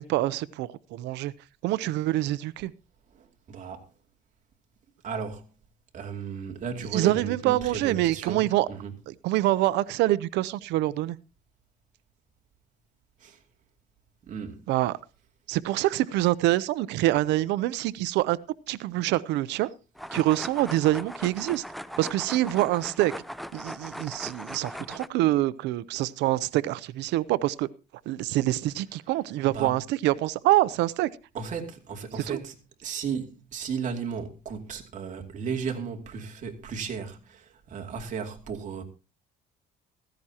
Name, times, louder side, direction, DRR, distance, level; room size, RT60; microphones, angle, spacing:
voice 1, 0.0-1.3 1.6-2.7 6.9-8.7 9.1-11.2 14.7-15.0 15.5-18.4 18.7-19.7 20.1-21.6 22.0-23.1 23.5-27.7 28.1-31.1 32.3-32.4, right 16 dB, 90° right, 0.7 m, -25 dB
voice 2, 3.1-3.9 5.0-5.4 5.9-8.9 13.2-13.4 14.2-14.6 29.5-29.7 31.3-32.5 32.8-38.8, right 6 dB, 45° right, 2.6 m, -35 dB
sound 1, 19.9-25.1, equal, ahead, 0.6 m, -39 dB
15.5 x 15.5 x 2.9 m
cardioid pair, 125°, 17 cm